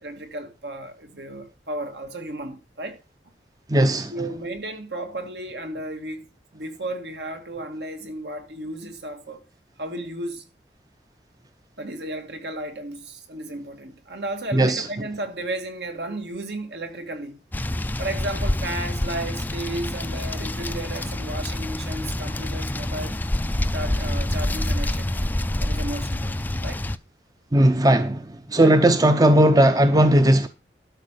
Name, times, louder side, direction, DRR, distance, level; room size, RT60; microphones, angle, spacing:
voice 1, 0.0-3.0 4.1-6.2 6.5-9.4 9.8-10.4 11.8-17.4 18.0-23.2 23.7-25.2 25.6-26.8 28.6-28.8, right 1 dB, 70° right, 2.3 m, -34 dB
voice 2, 3.7-4.1 14.5-14.8 27.5-28.2 28.5-30.5, right 1 dB, 20° right, 0.7 m, -17 dB
sound 1, 17.5-27.0, left 1 dB, 10° left, 0.4 m, -27 dB
12.5 x 5.4 x 6.6 m
head